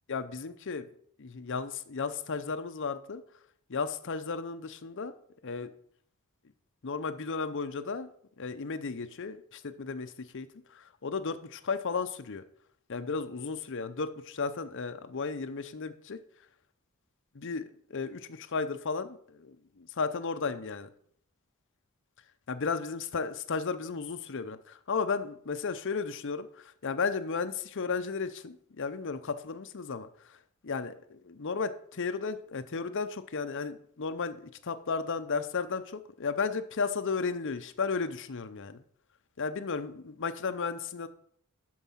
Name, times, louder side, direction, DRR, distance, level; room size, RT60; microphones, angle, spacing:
voice 1, 0.1-0.9 1.2-3.2 3.7-5.1 5.4-5.7 6.8-8.1 8.4-10.5 10.7-12.4 12.9-16.2 17.3-17.6 17.9-20.9 22.5-30.4 30.6-38.8 39.4-41.1, left 4 dB, 60° left, 11 dB, 0.7 m, -34 dB
12.0 x 4.7 x 5.6 m, 0.63 s
head